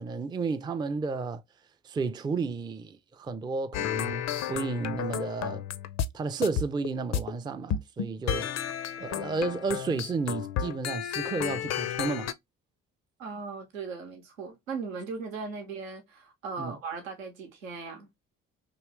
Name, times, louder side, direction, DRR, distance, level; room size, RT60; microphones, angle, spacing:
voice 1, 0.0-1.4 1.8-5.6 6.1-8.6 9.0-12.3 16.6-16.8, right 4 dB, 10° right, 0.4 m, -32 dB
sound 1, 3.7-6.1 6.4-7.3 7.7-12.3, left 9 dB, 45° left, 0.5 m, -32 dB
voice 2, 13.2-18.1, right 4 dB, 85° right, 0.8 m, -38 dB
3.1 x 2.9 x 3.1 m
figure-of-eight pair, 40°, 39 cm